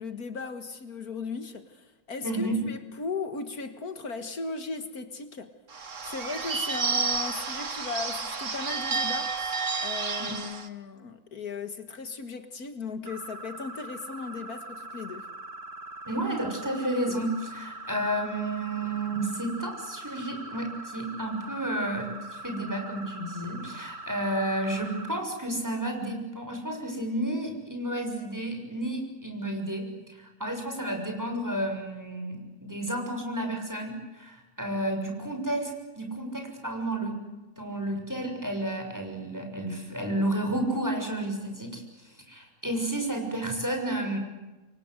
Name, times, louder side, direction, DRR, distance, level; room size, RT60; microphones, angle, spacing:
voice 1, 0.0-5.5 6.0-15.3, left 4 dB, 70° left, 2.2 m, -37 dB
voice 2, 2.2-2.6 10.2-10.3 16.0-37.1 37.6-44.2, right 1 dB, 10° right, 6.7 m, -31 dB
Bird / Bell, 5.7-10.7, right 5 dB, 50° right, 2.1 m, -31 dB
sound 1, 13.1-25.2, right 2 dB, 80° right, 2.4 m, -42 dB
29.0 x 24.0 x 8.0 m
omnidirectional pair, 1.6 m